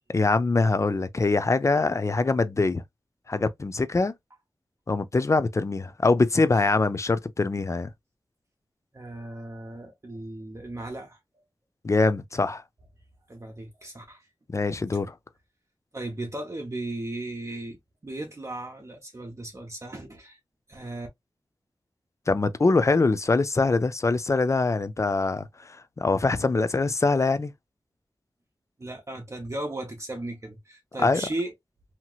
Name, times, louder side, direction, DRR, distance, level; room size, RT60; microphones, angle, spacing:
voice 1, 0.1-2.8 3.3-4.1 4.9-7.9 11.8-12.6 14.5-15.1 22.3-25.5 26.0-27.5 31.0-31.2, left 3 dB, 35° left, 0.4 m, -23 dB
voice 2, 8.9-11.2 13.3-14.2 15.9-17.8 18.0-20.4 20.7-21.1 28.8-31.5, right 2 dB, 35° right, 0.8 m, -36 dB
2.9 x 2.8 x 2.3 m
wide cardioid pair, 75°, 8 cm